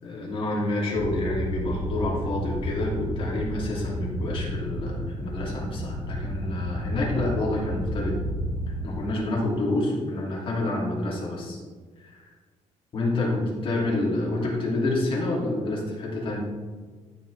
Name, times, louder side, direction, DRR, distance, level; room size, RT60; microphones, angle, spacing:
voice 1, 0.0-8.2 8.8-11.6 12.0-12.1 12.9-16.4, left 2 dB, 45° left, -4 dB, 2.7 m, -28 dB
sound 1, 0.9-9.0, equal, 10° left, 1.6 m, -31 dB
14.0 x 5.8 x 3.4 m, 1.4 s
cardioid pair, 175°, 13 cm